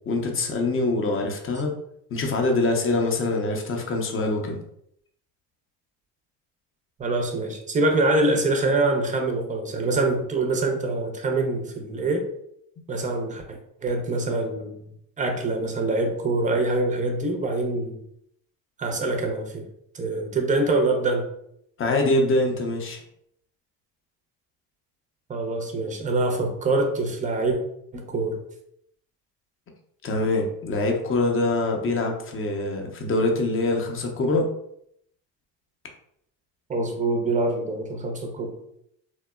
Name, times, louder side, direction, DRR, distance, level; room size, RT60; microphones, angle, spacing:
voice 1, 0.1-1.7 2.1-4.6 21.8-23.0 30.0-34.5, left 2 dB, 25° left, 2 dB, 0.6 m, -24 dB
voice 2, 7.0-12.3 12.9-14.8 15.2-18.0 18.8-19.7 19.9-21.2 25.3-27.6 27.9-28.4 36.7-38.6, right 2 dB, 15° right, 3 dB, 0.5 m, -25 dB
2.8 x 2.1 x 2.2 m, 0.72 s
hypercardioid pair, 65°, 50 cm